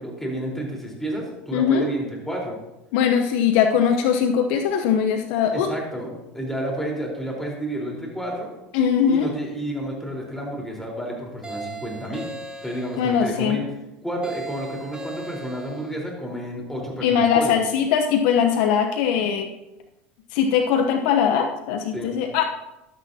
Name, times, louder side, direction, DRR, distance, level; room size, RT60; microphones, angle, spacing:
voice 1, 0.0-2.6 5.5-8.5 9.1-12.3 12.6-13.6 14.0-17.6 21.9-22.1, right 1 dB, 5° left, -2 dB, 4.2 m, -30 dB
voice 2, 1.5-1.9 2.9-5.7 8.7-9.3 13.0-13.6 17.0-19.5 20.3-22.4, left 7 dB, 70° left, 5 dB, 0.9 m, -20 dB
sound 1, 11.4-13.2 14.2-16.0, right 3 dB, 15° right, 2.9 m, -37 dB
15.0 x 11.5 x 2.9 m, 0.94 s
supercardioid pair, 95°, 6 cm